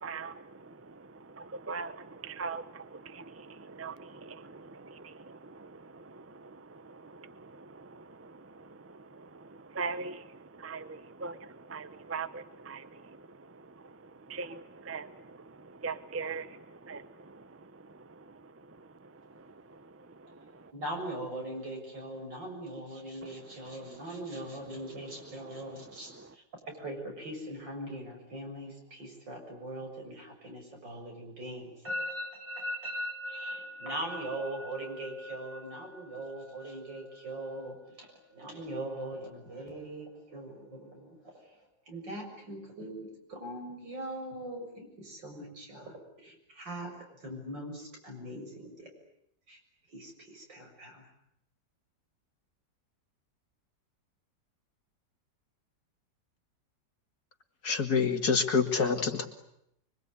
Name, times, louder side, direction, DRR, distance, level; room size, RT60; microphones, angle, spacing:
voice 1, 0.0-0.4 1.4-8.3 8.6-8.7 9.2-9.4 9.7-11.4 11.7-13.2 14.3-15.1 15.8-17.1, right 4 dB, 10° right, 0.8 m, -41 dB
voice 2, 20.7-26.1 26.7-41.4 41.9-45.9 46.2-46.9 47.2-48.9 49.5-49.6 49.9-51.1, right 1 dB, 85° right, 7.8 m, -40 dB
voice 3, 57.6-59.3, left 5 dB, 60° left, 2.8 m, -26 dB
25.0 x 24.0 x 9.8 m
omnidirectional pair, 1.9 m